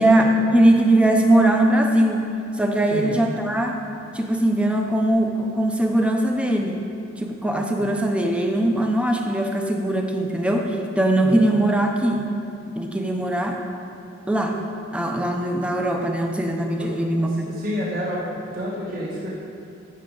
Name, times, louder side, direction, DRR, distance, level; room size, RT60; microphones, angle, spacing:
voice 1, 0.0-2.3 2.6-3.8 4.1-6.8 7.2-12.2 12.7-13.6 14.3-14.6 14.9-17.5, right 1 dB, 5° right, 2 dB, 0.6 m, -20 dB
voice 2, 7.5-7.9 11.2-11.4 16.8-16.9 17.4-19.3, equal, 45° right, -7 dB, 1.6 m, -30 dB
14.0 x 6.2 x 3.9 m, 2.7 s
head